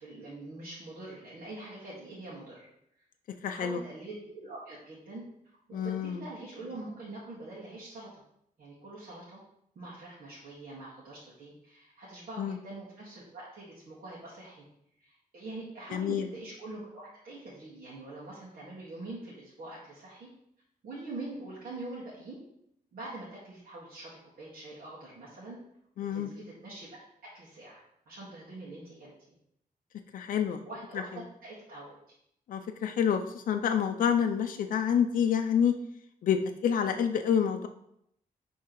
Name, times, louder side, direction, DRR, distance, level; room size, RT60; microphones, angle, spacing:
voice 1, 0.0-2.7 3.4-5.2 5.7-8.1 8.6-9.4 9.8-14.6 15.0-20.3 20.8-22.4 22.9-25.6 26.0-27.0 27.3-29.1 30.7-32.0, right 2 dB, 80° right, -8 dB, 1.9 m, -44 dB
voice 2, 3.4-3.8 5.7-6.2 12.4-12.6 15.9-16.3 26.0-26.3 30.1-30.6 30.9-31.0 32.5-35.7 36.2-37.7, left 8 dB, 65° left, 6 dB, 0.4 m, -28 dB
10.5 x 3.6 x 3.0 m, 0.74 s
wide cardioid pair, 140°, 15 cm